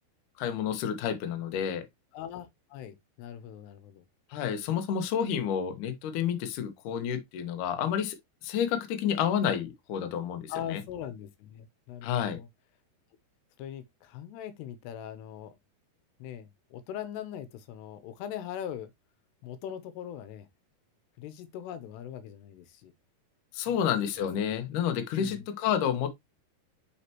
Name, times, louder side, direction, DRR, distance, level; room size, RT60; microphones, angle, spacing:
voice 1, 0.4-1.9 4.3-8.2 8.4-10.8 12.0-12.4 23.5-26.1, left 8 dB, 65° left, 2.3 m, -30 dB
voice 2, 2.1-4.0 10.5-12.5 13.6-15.6 16.2-18.9 19.4-20.5 21.2-22.9 23.7-24.1 25.2-25.5, left 10 dB, 85° left, 3.0 m, -41 dB
6.6 x 5.8 x 2.9 m
omnidirectional pair, 4.7 m